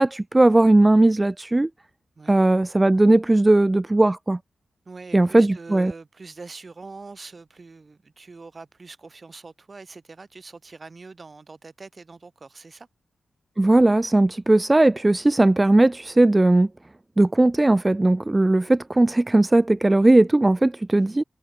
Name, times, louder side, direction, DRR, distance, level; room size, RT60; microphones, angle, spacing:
voice 1, 0.0-1.7 2.3-4.4 5.1-5.9 13.6-16.7 17.2-21.2, right 2 dB, 20° right, 0.4 m, -18 dB
voice 2, 4.9-12.9 20.9-21.2, right 3 dB, 40° right, 3.8 m, -43 dB
cardioid pair, 65°, 0 cm